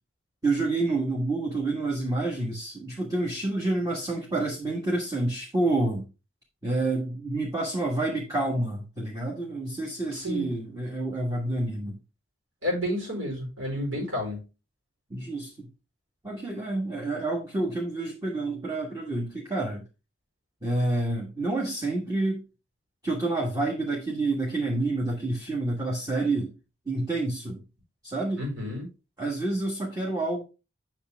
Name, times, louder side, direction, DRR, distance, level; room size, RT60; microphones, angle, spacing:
voice 1, 0.4-6.0 6.6-11.9 15.1-15.7 16.2-19.8 20.6-22.4 23.0-26.5 26.9-27.6 28.0-28.4 29.2-30.4, right 2 dB, 20° right, -3 dB, 1.5 m, -28 dB
voice 2, 10.1-10.5 12.6-14.4 28.4-28.9, left 1 dB, 90° right, 0 dB, 4.7 m, -30 dB
8.4 x 5.9 x 3.4 m, 0.30 s
head